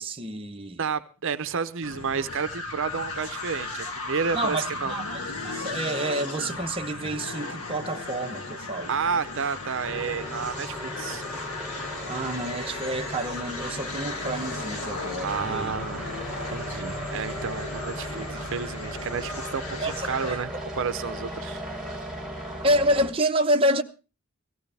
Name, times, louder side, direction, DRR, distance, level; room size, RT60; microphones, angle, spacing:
voice 1, 0.0-0.8 4.3-8.9 12.1-15.7 19.8-19.9 20.2-20.4 22.6-23.8, right 1 dB, 25° right, 0.8 m, -28 dB
voice 2, 0.8-4.9 8.9-11.2 15.2-16.1 16.5-21.7, right 6 dB, 60° right, 0.6 m, -31 dB
sound 1, 1.8-20.5, left 3 dB, 75° left, 2.4 m, -36 dB
sound 2, 9.8-23.1, equal, 5° right, 3.3 m, -37 dB
17.5 x 15.0 x 3.3 m
head